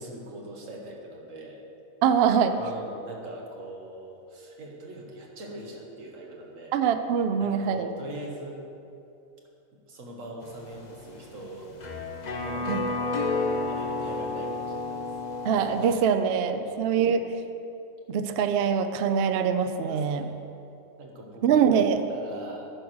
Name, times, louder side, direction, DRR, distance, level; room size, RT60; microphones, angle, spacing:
voice 1, 0.0-1.6 2.6-6.7 7.4-8.6 9.7-11.7 12.4-15.0 16.5-16.8 19.8-20.3 21.0-21.8 22.1-22.7, right 1 dB, 60° right, 0 dB, 1.6 m, -42 dB
voice 2, 2.0-2.6 6.7-7.9 12.7-12.8 15.4-17.3 18.1-20.3 21.4-22.0, right 7 dB, 75° right, 9 dB, 0.5 m, -23 dB
sound 1, 10.4-16.0, left 3 dB, 40° left, 0.6 m, -31 dB
11.0 x 4.8 x 6.2 m, 2.7 s
omnidirectional pair, 1.6 m